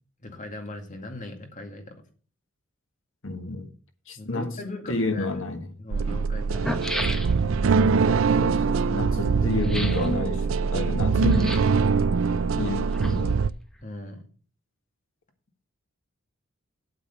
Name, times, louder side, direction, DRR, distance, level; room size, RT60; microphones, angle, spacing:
voice 1, 0.2-2.0 4.2-5.3 5.8-6.8 13.8-14.2, left 2 dB, 40° left, 2.2 m, -39 dB
voice 2, 3.2-3.7 4.1-4.5 4.9-5.7 8.4-11.6 12.6-13.4, left 2 dB, 65° left, 1.6 m, -30 dB
sound 1, 5.9-13.5, right 5 dB, 70° right, 0.5 m, -23 dB
sound 2, 6.5-7.7 9.6-10.1 11.3-11.8 12.7-13.5 13.8-13.9, equal, ahead, 1.0 m, -33 dB
8.5 x 8.1 x 6.0 m
head